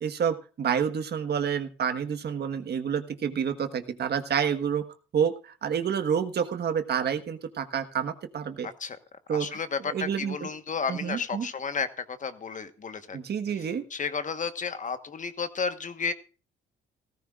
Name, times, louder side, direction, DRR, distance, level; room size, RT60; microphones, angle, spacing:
voice 1, 0.0-4.9 5.1-8.7 9.3-9.5 9.9-10.5 10.9-11.5 13.1-13.8, right 7 dB, 55° right, 9 dB, 1.4 m, -28 dB
voice 2, 8.6-9.0 9.3-13.2 13.5-16.1, left 5 dB, 40° left, 10 dB, 1.3 m, -32 dB
17.0 x 15.0 x 2.5 m, 0.35 s
cardioid pair, 90°, 20 cm